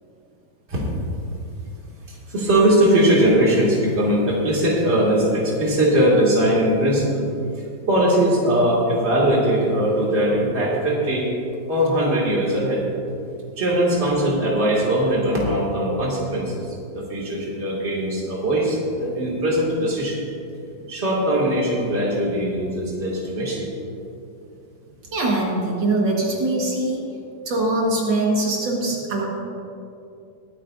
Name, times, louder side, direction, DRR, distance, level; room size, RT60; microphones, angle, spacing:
voice 1, 2.1-7.3 7.6-11.3 11.7-12.8 13.6-20.2 20.9-23.7, right 1 dB, 35° right, -5 dB, 2.5 m, -20 dB
voice 2, 25.1-27.0 27.5-29.2, right 2 dB, 80° right, -3 dB, 2.3 m, -22 dB
22.0 x 8.8 x 2.6 m, 2.6 s
omnidirectional pair, 1.9 m